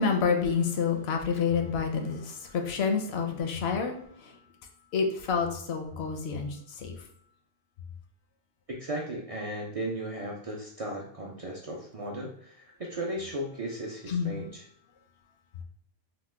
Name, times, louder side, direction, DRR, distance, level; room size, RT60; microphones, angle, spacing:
voice 1, 0.0-4.3 4.9-6.9 14.1-14.3, left 5 dB, 75° left, 4 dB, 0.8 m, -28 dB
voice 2, 8.7-14.6, right 1 dB, 55° right, -2 dB, 0.4 m, -36 dB
2.9 x 2.1 x 3.2 m, 0.67 s
omnidirectional pair, 1.1 m